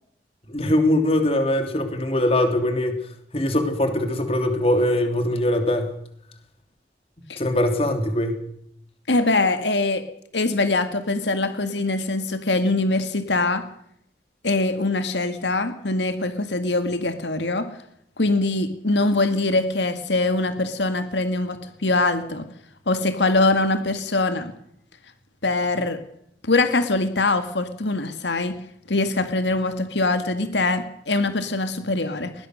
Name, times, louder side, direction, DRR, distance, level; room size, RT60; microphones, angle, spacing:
voice 1, 0.5-3.0 3.3-5.9 7.4-8.4, left 1 dB, 35° left, 6 dB, 3.0 m, -22 dB
voice 2, 9.1-10.0 10.3-13.6 14.4-17.7 18.2-22.5 22.9-24.5 25.4-26.0 26.4-28.6 28.9-32.3, left 2 dB, 90° left, 8 dB, 2.1 m, -23 dB
20.5 x 20.0 x 6.5 m, 0.71 s
head